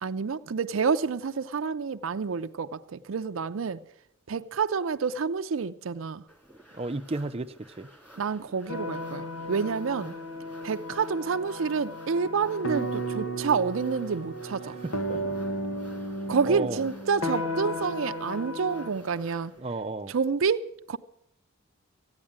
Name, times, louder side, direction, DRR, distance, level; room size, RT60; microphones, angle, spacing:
voice 1, 0.0-3.8 4.3-6.2 8.2-10.1 10.6-14.7 16.3-19.5 20.1-21.0, right 5 dB, 75° right, 0.5 m, -28 dB
sound 1, 6.3-19.6, right 1 dB, 10° left, 3.3 m, -53 dB
voice 2, 6.7-7.9 14.6-15.3 16.4-16.8 19.6-20.1, right 2 dB, 30° right, 0.6 m, -34 dB
sound 2, 8.7-18.9, equal, 80° left, 1.3 m, -34 dB
15.0 x 9.6 x 8.7 m
head